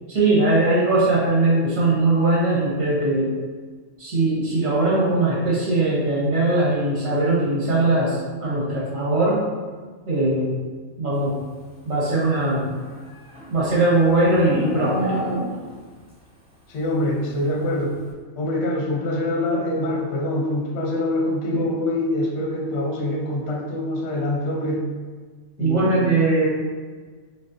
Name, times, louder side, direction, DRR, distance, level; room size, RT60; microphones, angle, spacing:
voice 1, 0.1-3.3 4.0-9.5 10.1-10.5 11.0-11.4 11.8-12.7 13.5-15.2 21.5-21.6 25.6-26.5, right 2 dB, 75° right, -6 dB, 1.5 m, -20 dB
Livestock farm animals working animals, 12.6-15.9, equal, 5° right, 0.6 m, -29 dB
voice 2, 16.7-18.0 18.4-24.9 25.6-26.0, left 1 dB, 60° left, 0 dB, 1.0 m, -25 dB
4.8 x 3.2 x 2.6 m, 1.5 s
omnidirectional pair, 1.4 m